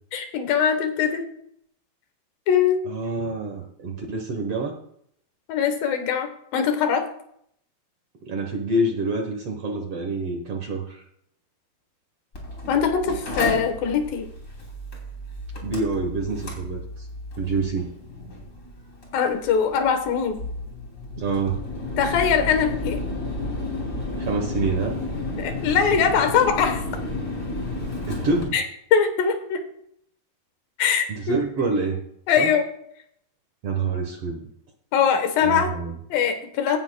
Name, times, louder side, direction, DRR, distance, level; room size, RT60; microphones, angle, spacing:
voice 1, 0.1-1.3 2.5-2.8 5.5-7.0 12.7-14.3 19.1-20.4 22.0-23.0 25.4-26.8 28.5-28.6 28.9-29.6 30.8-31.4 32.3-32.7 34.9-35.7 36.1-36.8, left 7 dB, 90° left, 7 dB, 2.9 m, -22 dB
voice 2, 2.9-4.7 8.2-11.0 15.6-17.1 17.4-17.9 21.2-21.6 24.2-25.0 28.1-28.6 31.1-32.0 32.4-32.5 33.6-34.5 35.4-36.0, right 3 dB, 60° right, 3 dB, 1.6 m, -27 dB
Mechanical fan, 12.3-28.4, left 2 dB, 25° left, 2.9 m, -32 dB
16.5 x 11.5 x 2.2 m, 0.71 s
omnidirectional pair, 3.9 m